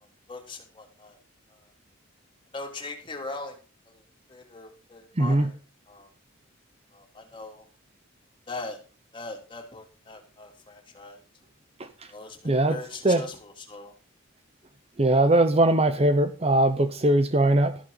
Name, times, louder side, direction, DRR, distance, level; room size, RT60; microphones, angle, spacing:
voice 1, 0.3-1.2 1.5-1.7 2.5-3.6 3.8-4.0 4.3-5.6 5.9-6.1 6.9-7.7 8.5-8.8 9.1-11.2 12.1-13.9, left 3 dB, 25° left, 3.3 m, -40 dB
voice 2, 12.4-12.8 13.0-13.2 15.0-17.8, right 1 dB, 30° right, 0.8 m, -20 dB
13.5 x 11.5 x 4.0 m
head